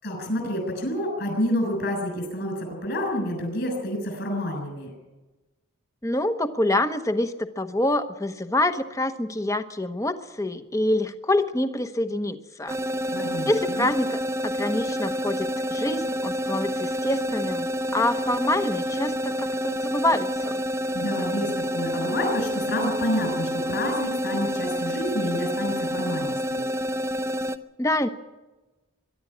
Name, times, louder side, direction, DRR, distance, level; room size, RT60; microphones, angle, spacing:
voice 1, 0.0-4.9 13.1-13.9 20.9-26.6, left 1 dB, 50° left, 3 dB, 6.6 m, -29 dB
voice 2, 6.0-12.8 13.5-20.6 27.8-28.1, left 1 dB, 15° left, 9 dB, 1.0 m, -26 dB
sound 1, 12.7-27.6, equal, 15° right, 0.7 m, -28 dB
22.5 x 12.0 x 9.9 m, 1.1 s
head